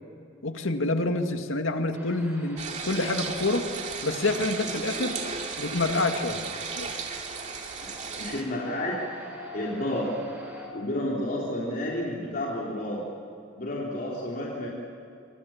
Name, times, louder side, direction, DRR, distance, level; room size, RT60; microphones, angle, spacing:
voice 1, 0.4-3.7 4.0-5.2 5.6-6.4 6.8-7.0, left 2 dB, 90° left, 5 dB, 2.1 m, -27 dB
sound 1, 1.9-10.7, right 1 dB, 10° right, 6.0 m, -45 dB
sound 2, 2.6-8.4, right 5 dB, 35° right, 2.7 m, -35 dB
voice 2, 7.8-9.0 9.5-10.2 10.7-13.0 13.6-14.7, left 1 dB, 45° left, -4 dB, 3.7 m, -31 dB
27.0 x 25.0 x 7.4 m, 2.8 s
head